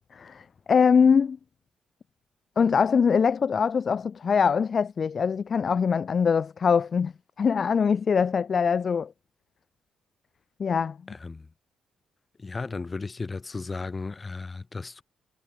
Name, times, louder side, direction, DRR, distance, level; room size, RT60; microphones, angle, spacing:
voice 1, 0.1-1.4 2.6-9.1 10.6-11.0, left 6 dB, 45° left, 1.1 m, -23 dB
voice 2, 11.1-11.5 12.4-15.0, left 3 dB, 25° left, 7.5 m, -35 dB
cardioid pair, 90°, 0 cm